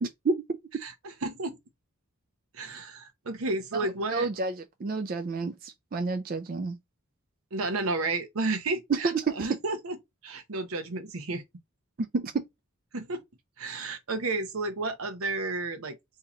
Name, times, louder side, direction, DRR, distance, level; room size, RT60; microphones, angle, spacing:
voice 1, 0.0-0.3 3.7-4.5 4.8-6.8 8.9-9.6 12.0-12.4, right 4 dB, 40° right, 0.3 m, -29 dB
voice 2, 0.8-1.6 2.5-4.3 7.5-10.0 10.2-11.4 12.9-13.2 13.6-16.0, right 3 dB, 80° right, 0.8 m, -32 dB
3.7 x 2.8 x 2.9 m
head